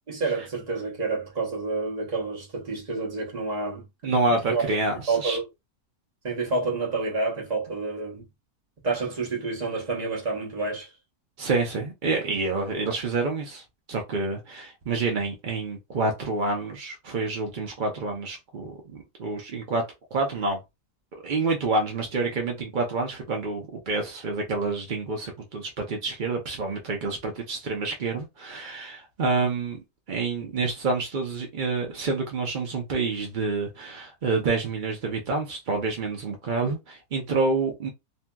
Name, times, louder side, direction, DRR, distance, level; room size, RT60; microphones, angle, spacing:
voice 1, 0.1-4.1 4.5-4.6 5.1-5.5 6.2-8.2 8.8-10.9, right 3 dB, 35° right, 0.8 m, -29 dB
voice 2, 4.0-5.4 11.4-13.6 13.9-19.8 20.1-20.6 21.1-37.9, right 3 dB, 75° right, 0.4 m, -28 dB
2.8 x 2.6 x 2.2 m
omnidirectional pair, 1.8 m